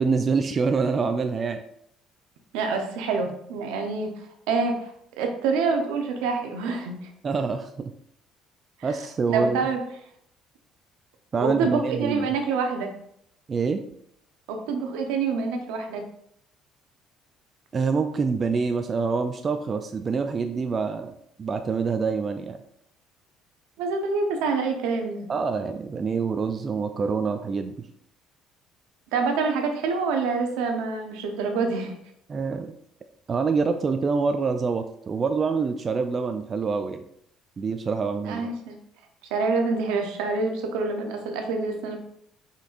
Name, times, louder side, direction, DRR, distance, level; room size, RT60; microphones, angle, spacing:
voice 1, 0.0-1.6 7.2-7.9 8.8-9.7 11.3-12.3 13.5-13.8 17.7-21.1 21.4-22.6 25.3-27.9 32.3-32.7 33.3-37.0 37.6-38.5, right 5 dB, 40° right, 7 dB, 0.4 m, -26 dB
voice 2, 2.5-4.9 5.2-7.1 8.8-8.9 9.3-9.8 11.4-12.9 14.5-16.0 23.8-25.3 29.1-31.9 38.2-38.8 39.3-42.0, right 4 dB, 85° right, 4 dB, 0.8 m, -26 dB
5.4 x 3.7 x 2.5 m, 0.70 s
supercardioid pair, 70°, 0 cm